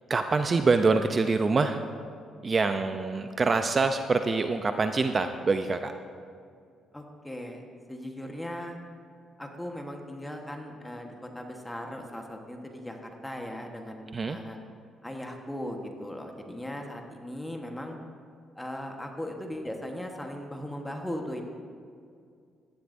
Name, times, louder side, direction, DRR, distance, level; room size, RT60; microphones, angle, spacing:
voice 1, 0.1-1.8 2.4-5.9 14.1-14.4, right 4 dB, 35° right, 8 dB, 0.5 m, -25 dB
voice 2, 6.9-8.8 9.4-14.6 15.0-18.0 18.6-21.4, left 1 dB, 10° left, 2 dB, 1.2 m, -38 dB
15.5 x 11.5 x 2.6 m, 2.3 s
cardioid pair, 90°, 0 cm